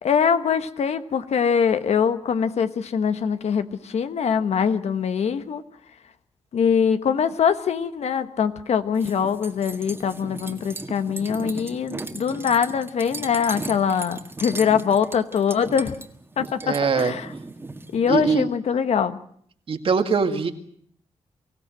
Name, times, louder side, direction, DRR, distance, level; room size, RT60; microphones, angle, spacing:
voice 1, 0.0-5.6 6.5-16.0 16.4-17.3 17.9-19.2, left 7 dB, 70° left, 11 dB, 1.2 m, -23 dB
sound 1, 8.9-18.4, right 2 dB, 20° right, 1.7 m, -37 dB
voice 2, 16.6-17.1 18.1-18.5 19.7-20.5, right 5 dB, 55° right, 6 dB, 2.0 m, -22 dB
24.5 x 16.0 x 7.7 m, 0.62 s
cardioid pair, 100°, 11 cm